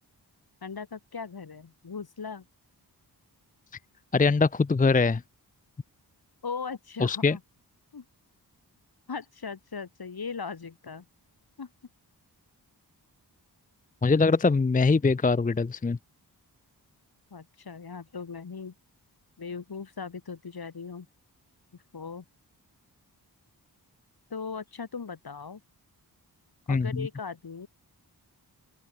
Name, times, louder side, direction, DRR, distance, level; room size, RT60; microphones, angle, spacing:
voice 1, 0.6-2.4 6.4-7.4 7.9-8.0 9.1-11.1 11.6-11.7 17.3-18.7 19.4-21.1 21.9-22.2 24.3-25.6 26.7-27.7, left 5 dB, 65° left, 7.5 m, -38 dB
voice 2, 4.1-5.2 7.0-7.4 14.0-16.0 26.7-27.1, left 4 dB, 20° left, 0.5 m, -22 dB
open air
wide cardioid pair, 135°, 40 cm